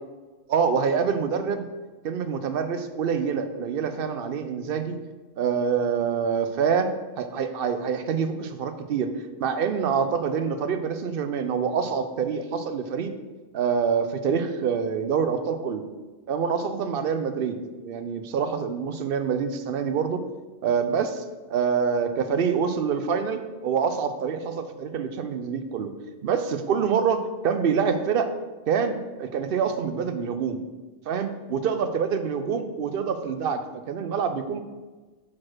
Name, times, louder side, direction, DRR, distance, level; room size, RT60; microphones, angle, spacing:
voice 1, 0.5-1.7 2.0-5.0 5.4-6.9 7.2-9.1 9.4-13.1 13.5-15.8 16.3-17.6 17.8-20.2 20.6-25.9 26.2-28.3 28.7-30.6 31.1-33.6 33.9-34.6, right 6 dB, 65° right, 9 dB, 0.7 m, -26 dB
4.9 x 4.2 x 5.9 m, 1.2 s
omnidirectional pair, 1.1 m